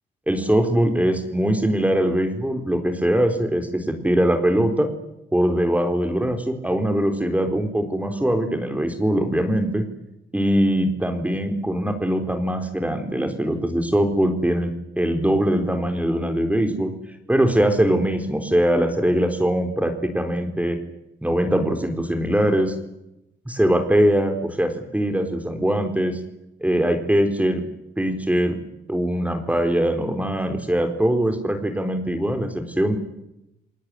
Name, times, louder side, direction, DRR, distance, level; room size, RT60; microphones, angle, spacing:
voice 1, 0.3-4.9 5.3-9.8 10.3-16.9 17.3-20.8 21.2-22.7 23.5-26.2 26.6-27.6 28.0-28.6 28.9-33.0, right 1 dB, 5° right, 5 dB, 4.2 m, -22 dB
29.0 x 19.0 x 9.9 m, 0.88 s
cardioid pair, 90°, 20 cm